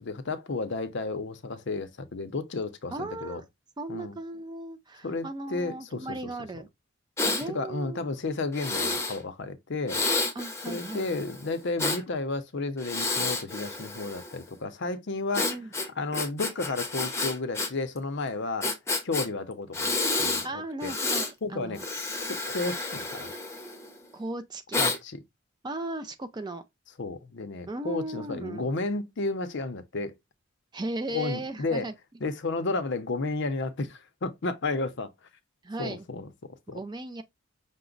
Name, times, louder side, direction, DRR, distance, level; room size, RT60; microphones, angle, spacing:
voice 1, 0.0-3.4 3.9-4.2 5.0-6.1 7.5-10.0 10.7-15.5 16.0-18.7 19.0-19.9 20.2-20.9 21.4-21.8 22.3-23.3 24.8-25.2 27.0-30.1 31.1-31.9 32.2-35.1 35.8-36.8, left 3 dB, 55° left, 0.6 m, -32 dB
voice 2, 2.9-3.4 3.8-6.7 7.2-8.1 10.3-11.1 15.4-15.7 20.4-21.8 24.1-25.0 25.6-26.6 27.7-28.7 30.7-31.9 35.6-36.1 36.7-37.2, right 2 dB, 20° right, 0.4 m, -36 dB
Breathing, 7.2-7.4 8.5-9.2 9.9-12.0 12.8-14.4 15.3-17.7 18.0-18.1 18.6-19.3 19.7-20.5 20.8-21.3 21.7-23.9 24.7-25.0, left 3 dB, 15° left, 0.7 m, -30 dB
5.8 x 2.1 x 3.8 m
head